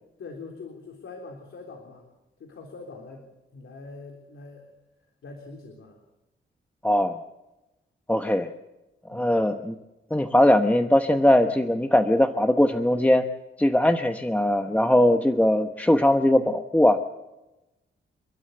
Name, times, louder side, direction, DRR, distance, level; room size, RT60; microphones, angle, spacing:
voice 1, 0.2-2.1 2.4-3.3 3.5-4.7 5.2-6.0 9.1-9.3, left 3 dB, 75° left, 2 dB, 3.5 m, -43 dB
voice 2, 6.8-7.2 8.1-8.5 9.1-9.7 10.1-13.2 13.6-17.0, left 1 dB, 5° left, 6 dB, 0.9 m, -20 dB
29.5 x 12.5 x 7.9 m, 1.0 s
wide cardioid pair, 125°, 21 cm